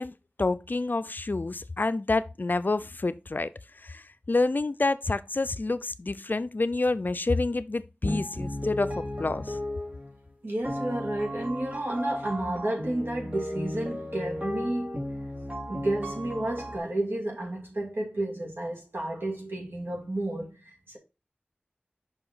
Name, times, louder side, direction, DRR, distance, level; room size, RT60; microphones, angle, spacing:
voice 1, 0.0-3.5 3.8-9.6, left 3 dB, 55° left, 0.5 m, -28 dB
sound 1, 8.0-10.2 10.6-16.8, left 1 dB, 40° right, 2.8 m, -35 dB
voice 2, 10.4-15.0 15.7-21.0, right 1 dB, 85° right, 2.4 m, -31 dB
5.7 x 4.9 x 3.9 m
wide cardioid pair, 45°, 4 cm